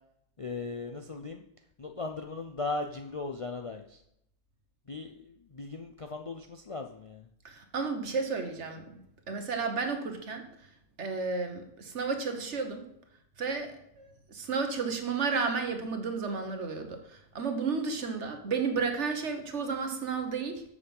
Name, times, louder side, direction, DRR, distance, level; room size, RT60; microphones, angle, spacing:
voice 1, 0.4-1.4 1.8-4.0 4.9-7.3, left 3 dB, 40° left, 5 dB, 0.4 m, -38 dB
voice 2, 7.4-9.0 9.3-10.5 11.0-12.9 13.4-20.6, right 4 dB, 65° right, 5 dB, 1.5 m, -32 dB
7.4 x 6.8 x 5.3 m, 0.78 s
omnidirectional pair, 1.3 m